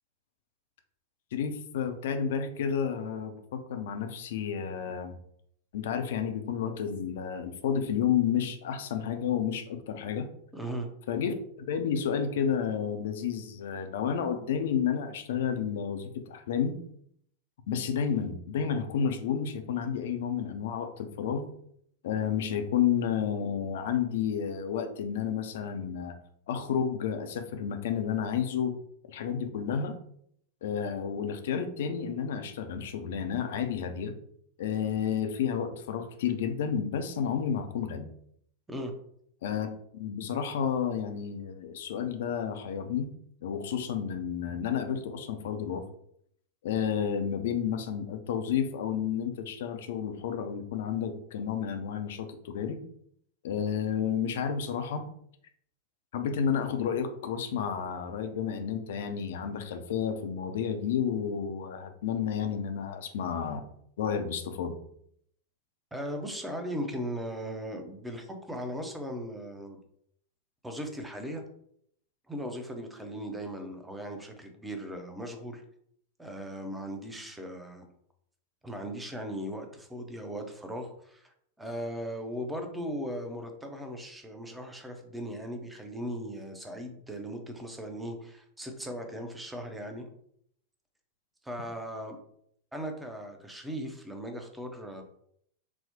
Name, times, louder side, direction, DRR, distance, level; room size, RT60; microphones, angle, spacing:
voice 1, 1.3-5.1 5.7-10.3 11.1-16.8 17.7-21.5 22.0-26.1 26.5-28.7 29.0-30.0 30.6-34.1 34.6-38.1 39.4-43.1 43.4-45.9 46.6-52.8 53.4-55.1 56.1-63.6 64.0-64.8, left 8 dB, 55° left, 7 dB, 0.4 m, -31 dB
voice 2, 10.5-10.9 38.7-38.9 65.9-69.8 70.6-71.4 72.3-75.6 76.2-77.9 78.6-90.1 91.4-92.2 92.7-95.0, equal, 5° right, 4 dB, 0.6 m, -38 dB
4.0 x 2.0 x 2.9 m, 0.69 s
figure-of-eight pair, 90°, 0 cm